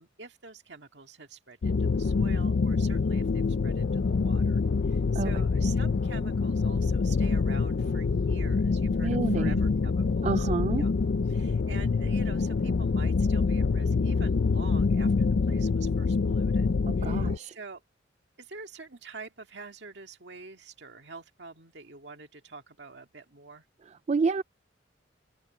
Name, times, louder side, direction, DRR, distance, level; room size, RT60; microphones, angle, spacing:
voice 1, 0.0-10.5 10.8-10.9 11.3-16.7 17.0-17.8 18.4-23.7, right 4 dB, 65° right, 2.0 m, -47 dB
sound 1, 1.6-17.4, left 4 dB, 60° left, 0.4 m, -26 dB
sound 2, 9.0-11.3, equal, 5° left, 7.2 m, -63 dB
voice 2, 9.0-9.6 10.2-10.8 16.9-17.5 24.1-24.4, right 4 dB, 35° right, 0.3 m, -28 dB
head